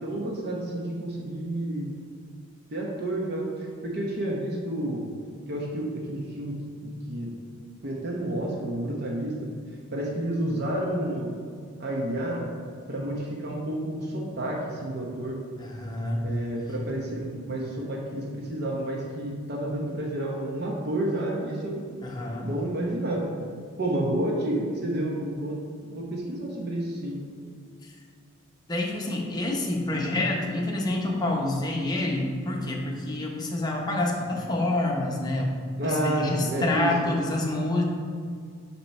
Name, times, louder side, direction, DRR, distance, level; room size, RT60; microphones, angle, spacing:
voice 1, 0.0-1.9 2.7-5.0 5.5-7.3 7.8-9.5 9.9-11.3 11.8-12.5 12.9-15.4 16.2-21.9 22.4-23.3 23.8-27.2 35.8-37.1, right 1 dB, 50° right, -2 dB, 0.8 m, -30 dB
voice 2, 15.6-16.3 22.0-22.5 27.8-27.9 28.7-35.5 35.8-37.8, left 2 dB, 20° left, -1 dB, 0.8 m, -27 dB
7.2 x 3.0 x 5.4 m, 2.1 s
head